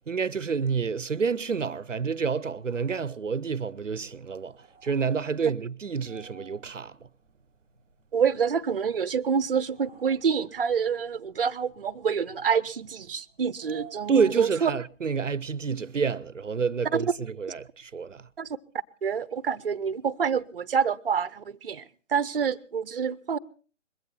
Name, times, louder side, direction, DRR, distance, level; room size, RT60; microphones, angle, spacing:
voice 1, 0.1-4.5 4.8-6.9 14.1-18.2, right 5 dB, 85° right, 0.8 m, -28 dB
sound 1, 2.5-15.0, right 7 dB, 5° left, 0.8 m, -56 dB
voice 2, 8.1-14.7 16.9-17.0 18.4-18.5 19.0-21.8 22.1-23.4, right 6 dB, 50° right, 0.7 m, -27 dB
21.5 x 15.0 x 4.2 m
figure-of-eight pair, 150°, 37 cm